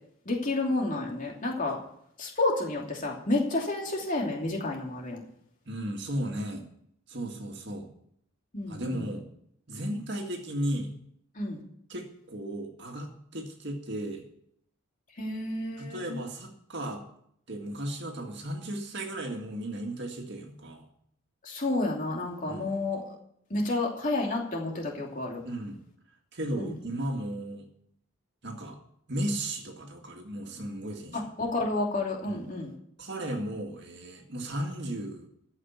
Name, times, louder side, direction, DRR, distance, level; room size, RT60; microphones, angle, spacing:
voice 1, 0.2-1.8 2.2-5.2 8.5-9.1 11.3-11.6 15.2-16.2 21.4-23.1 23.5-25.4 26.5-26.7 31.1-32.7, left 2 dB, 35° left, -1 dB, 2.9 m, -30 dB
voice 2, 5.7-6.7 7.1-7.9 8.7-9.3 9.7-10.9 11.9-14.3 15.8-17.0 17.5-20.9 22.5-22.7 25.5-25.8 26.3-27.7 28.4-28.8 29.1-31.2 32.3-32.4 33.0-35.3, right 1 dB, 55° right, 3 dB, 2.0 m, -35 dB
14.0 x 5.8 x 9.4 m, 0.69 s
head